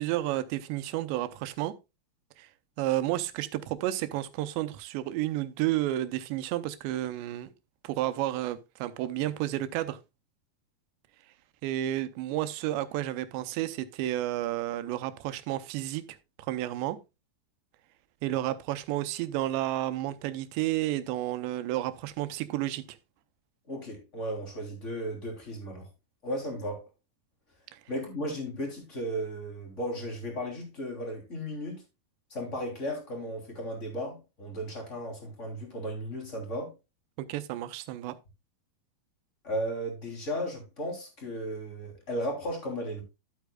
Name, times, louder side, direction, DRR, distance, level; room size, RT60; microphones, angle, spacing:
voice 1, 0.0-1.7 2.4-2.5 2.8-7.5 7.8-10.0 11.6-16.0 16.4-17.0 18.2-22.8 27.7-27.8 37.2-38.2, right 14 dB, 85° right, 2.9 m, -31 dB
voice 2, 23.7-25.9 26.2-26.9 27.9-31.8 32.3-36.7 39.4-43.0, equal, 20° left, 2.9 m, -35 dB
12.5 x 8.3 x 2.3 m
omnidirectional pair, 5.0 m